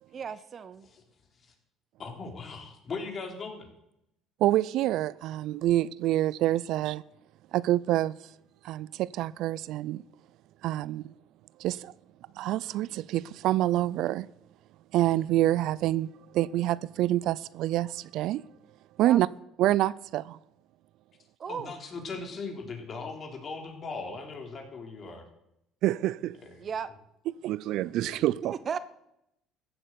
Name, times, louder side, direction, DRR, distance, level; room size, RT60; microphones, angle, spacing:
voice 1, 0.1-0.9 19.0-19.2 21.4-21.7 26.6-26.9 28.4-28.8, right 7 dB, 45° right, 0.9 m, -35 dB
voice 2, 2.0-3.7 21.5-25.2 26.6-26.7 28.0-28.1, left 4 dB, 45° left, 3.7 m, -39 dB
voice 3, 4.4-7.0 7.5-8.2 8.6-10.0 10.6-11.1 11.6-11.9 12.4-14.3 14.9-18.4 19.0-19.3 19.6-20.4 25.8-26.4 27.3-28.6, right 14 dB, 70° right, 0.4 m, -27 dB
14.5 x 8.0 x 7.9 m
supercardioid pair, 80°, 0 cm